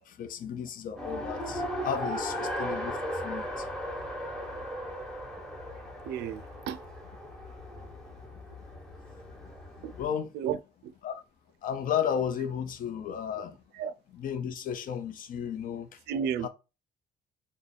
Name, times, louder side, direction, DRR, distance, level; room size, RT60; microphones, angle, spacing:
voice 1, 0.1-3.7 10.0-10.3 11.0-11.2 11.6-13.5 14.1-15.9 16.4-16.5, left 8 dB, 55° left, 0.7 m, -33 dB
Race car auto racing, 1.0-10.0, equal, 5° left, 1.2 m, -37 dB
voice 2, 6.1-6.8 9.8-9.9 10.3-10.9 13.7-13.9 16.1-16.5, right 8 dB, 80° right, 0.4 m, -33 dB
3.3 x 2.2 x 4.0 m
cardioid pair, 110°, 17 cm